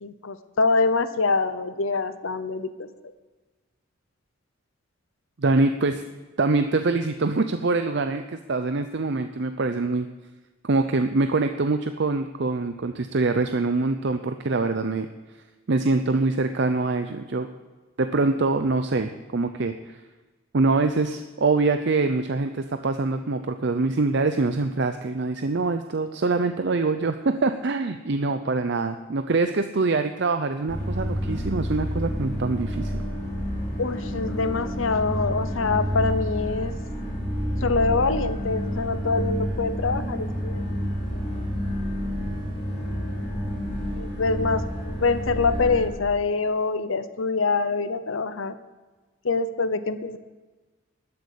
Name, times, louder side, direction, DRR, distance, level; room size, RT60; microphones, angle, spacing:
voice 1, 0.0-2.9 33.8-36.7 37.6-40.8 41.1-41.2 43.8-48.6 49.2-50.2, left 4 dB, 75° left, 12 dB, 0.8 m, -25 dB
voice 2, 5.4-6.0 6.4-10.1 10.6-15.1 15.7-17.5 18.0-20.0 20.5-33.0, right 3 dB, 55° right, 8 dB, 0.6 m, -24 dB
sound 1, 30.7-45.9, equal, 15° left, 4.7 m, -29 dB
12.5 x 8.0 x 8.3 m, 1.3 s
head